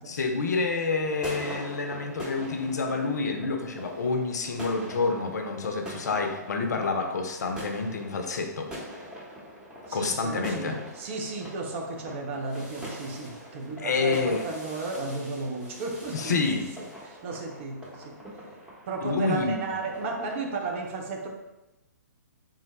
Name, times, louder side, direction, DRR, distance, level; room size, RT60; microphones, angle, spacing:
voice 1, 0.1-8.7 9.9-10.8 13.8-14.4 16.1-16.7 19.0-19.7, left 4 dB, 65° left, 4 dB, 0.5 m, -28 dB
sound 1, 0.9-20.4, equal, 5° right, 0.7 m, -43 dB
voice 2, 9.9-16.4 17.0-18.2 18.9-21.3, right 3 dB, 40° right, 2 dB, 0.5 m, -34 dB
3.7 x 2.0 x 2.9 m, 0.96 s
figure-of-eight pair, 125°, 10 cm